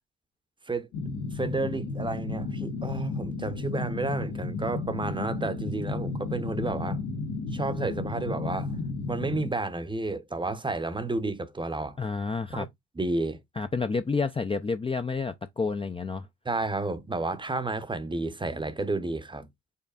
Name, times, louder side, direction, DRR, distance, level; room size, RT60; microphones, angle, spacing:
sound 1, 0.9-9.5, left 3 dB, 75° left, 1.4 m, -33 dB
voice 1, 1.3-7.0 7.5-8.7 9.1-12.0 12.5-12.7 13.0-13.4 16.5-19.5, right 3 dB, 15° right, 0.7 m, -31 dB
voice 2, 12.0-12.7 13.6-16.3, left 4 dB, 20° left, 0.4 m, -29 dB
5.6 x 3.9 x 2.3 m
cardioid pair, 90°, 30 cm